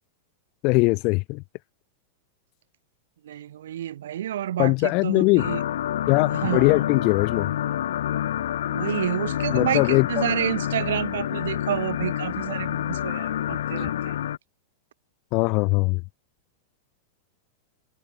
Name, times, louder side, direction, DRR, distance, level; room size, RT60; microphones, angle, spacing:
voice 1, 0.6-1.4 4.6-5.5 6.1-7.5 9.5-10.1 15.3-16.0, left 28 dB, 30° left, 0.9 m, -21 dB
voice 2, 3.2-5.6 6.3-6.8 8.7-14.2, right 11 dB, 80° right, 2.9 m, -29 dB
sound 1, 5.4-14.4, left 11 dB, 90° left, 1.8 m, -28 dB
supercardioid pair, 180°, 0 cm